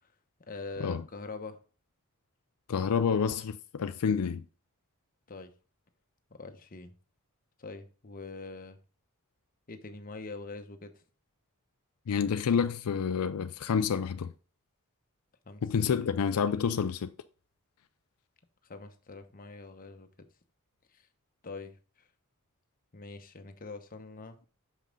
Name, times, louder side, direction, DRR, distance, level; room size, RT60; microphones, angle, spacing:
voice 1, 0.5-1.6 5.3-5.5 6.3-6.9 7.6-8.8 9.7-11.0 15.4-15.6 15.9-16.1 18.6-20.1 20.9-21.1 21.4-22.1 22.9-24.4, left 3 dB, 40° left, 0.9 m, -44 dB
voice 2, 2.7-4.4 12.1-14.3 15.6-17.1, left 6 dB, 80° left, 0.4 m, -28 dB
6.4 x 5.4 x 3.8 m
head